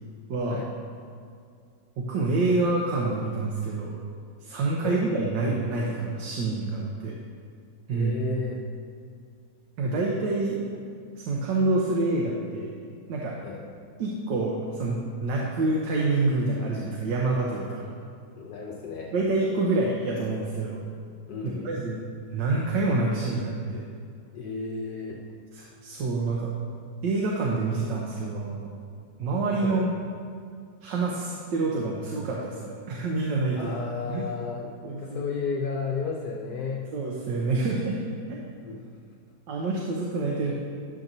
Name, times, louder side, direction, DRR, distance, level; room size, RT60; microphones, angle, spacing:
voice 1, 0.3-0.6 2.0-4.0 4.4-7.2 7.9-8.1 9.8-10.6 11.2-12.7 13.1-13.4 14.0-17.8 19.1-20.8 21.4-22.0 22.3-23.9 25.5-26.5 27.0-28.7 29.2-29.9 30.8-33.7 34.1-34.2 34.8-35.2 36.9-38.0 38.3-38.4 39.5-40.5, right 3 dB, 80° right, -2 dB, 1.5 m, -27 dB
voice 2, 7.9-8.6 13.4-13.7 18.3-19.1 21.3-21.8 24.3-25.2 29.6-29.8 33.6-36.9 38.6-38.9, left 5 dB, 65° left, -1 dB, 1.1 m, -33 dB
11.5 x 7.2 x 2.7 m, 2.3 s
omnidirectional pair, 1.9 m